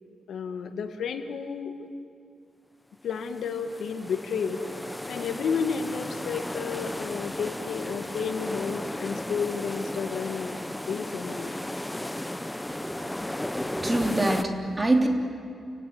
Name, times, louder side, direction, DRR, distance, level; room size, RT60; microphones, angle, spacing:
voice 1, 0.3-1.9 3.0-4.6 5.1-10.5 10.9-11.5, left 6 dB, 80° left, 6 dB, 1.9 m, -31 dB
sound 1, 3.0-14.4, left 1 dB, 10° left, 0.7 m, -35 dB
voice 2, 13.4-15.1, right 2 dB, 20° right, 2 dB, 3.2 m, -25 dB
29.0 x 18.0 x 9.5 m, 2.4 s
cardioid pair, 105°, 0 cm